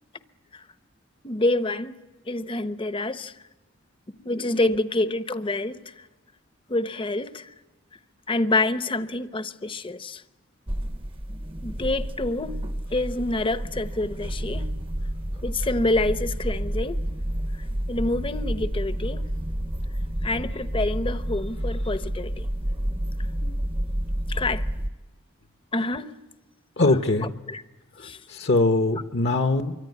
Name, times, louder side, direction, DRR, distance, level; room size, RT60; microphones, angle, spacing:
voice 1, 1.2-2.0 2.3-3.4 4.2-6.1 6.7-7.5 8.3-10.2 11.6-12.6 12.9-14.7 15.4-17.0 17.5-19.3 20.2-22.5 24.3-24.7 25.7-26.2 27.2-27.6 28.0-28.2, left 2 dB, 25° left, 0.8 m, -27 dB
sound 1, 10.7-24.9, equal, 25° right, 0.9 m, -30 dB
voice 2, 26.8-27.3 28.0-29.7, left 2 dB, 55° left, 1.0 m, -22 dB
26.0 x 24.0 x 9.4 m
head